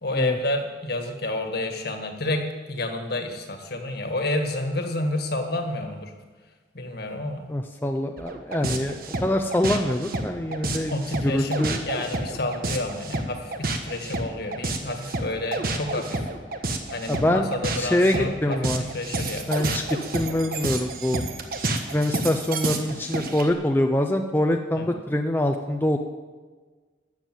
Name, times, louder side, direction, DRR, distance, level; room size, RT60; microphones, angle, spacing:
voice 1, 0.0-6.1 6.7-7.5 10.9-16.3 16.9-19.5 24.7-24.9, left 2 dB, 60° left, 5 dB, 1.7 m, -29 dB
voice 2, 7.5-10.9 11.2-11.8 17.1-17.5 17.8-18.8 19.5-19.8 20.1-21.2 21.9-26.0, left 1 dB, 10° left, 4 dB, 0.6 m, -24 dB
sound 1, 8.2-23.5, right 2 dB, 50° right, 1.3 m, -29 dB
13.5 x 7.4 x 9.1 m, 1.4 s
head